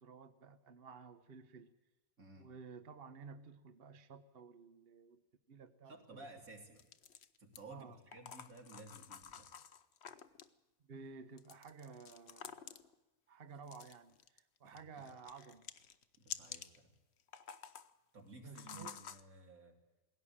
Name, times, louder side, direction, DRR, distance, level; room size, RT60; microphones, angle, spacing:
voice 1, 0.0-1.7 2.4-5.2 5.5-6.3 7.7-8.0 10.8-12.9 13.3-15.7 18.4-19.0, right 5 dB, 45° right, 10 dB, 1.0 m, -54 dB
voice 2, 2.2-2.5 5.9-6.8 7.4-9.5 14.7-15.0 16.2-16.9 18.1-19.8, right 2 dB, 65° right, 2 dB, 3.6 m, -55 dB
sound 1, 6.8-7.6 8.1-10.5 11.4-12.9 13.7-14.4 14.7-16.8 17.2-17.9 18.6-19.2, left 7 dB, 50° left, 1.0 m, -50 dB
20.0 x 17.0 x 8.7 m, 1.1 s
omnidirectional pair, 1.6 m